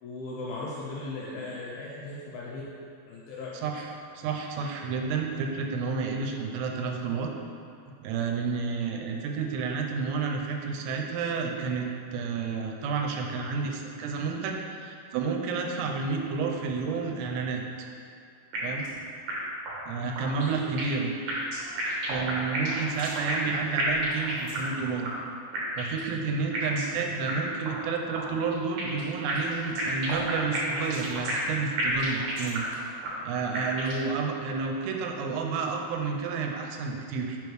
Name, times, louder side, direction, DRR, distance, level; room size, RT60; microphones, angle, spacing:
voice 1, 0.0-2.6 3.1-3.5 19.9-20.1 20.4-20.5, left 2 dB, 80° left, -5 dB, 2.2 m, -38 dB
voice 2, 3.5-7.3 8.0-17.6 18.6-18.9 19.8-21.1 22.1-25.1 25.7-32.6 33.2-37.4, right 5 dB, 85° right, 1 dB, 2.6 m, -30 dB
sound 1, 18.5-19.0 19.3-19.4 19.7-19.8 20.2-21.0 21.3-23.5 23.8-24.8 25.0-25.1 25.5-26.1 26.5-27.0 27.3-27.4 27.7-27.8 28.1-29.0 29.3-31.5 31.8-32.8 33.0-33.1 33.5-34.1, right 1 dB, 70° right, 2.1 m, -31 dB
5.8 x 5.3 x 3.1 m, 2.4 s
omnidirectional pair, 4.9 m